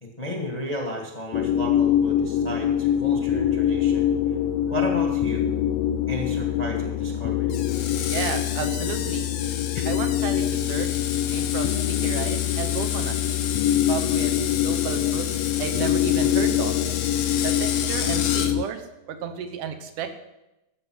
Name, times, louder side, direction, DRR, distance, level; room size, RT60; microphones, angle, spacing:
voice 1, 0.0-4.1 4.7-5.5 6.1-7.6 9.7-9.9, left 1 dB, 20° left, 1 dB, 1.1 m, -33 dB
sound 1, 1.3-18.6, left 10 dB, 90° left, 1.4 m, -24 dB
Screech, 7.5-18.5, left 9 dB, 70° left, 1.5 m, -31 dB
voice 2, 8.1-9.3 9.9-10.9 11.3-13.2 13.9-15.3 15.6-16.8 17.4-20.2, right 7 dB, 85° right, 6 dB, 2.6 m, -32 dB
13.5 x 8.0 x 6.2 m, 0.94 s
omnidirectional pair, 3.6 m